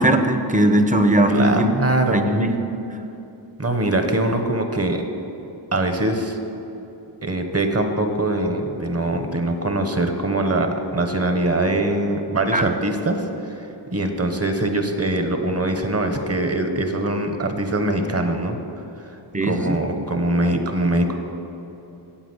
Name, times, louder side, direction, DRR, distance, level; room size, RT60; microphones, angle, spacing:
voice 1, 0.0-1.7 2.1-2.5 12.5-12.8 19.3-19.8, right 1 dB, 15° right, 7 dB, 0.9 m, -19 dB
voice 2, 1.3-2.4 3.6-5.0 5.7-6.4 7.2-18.6 19.4-21.1, right 1 dB, 35° right, 6 dB, 1.2 m, -22 dB
10.0 x 7.9 x 8.1 m, 2.9 s
wide cardioid pair, 85°, 45 cm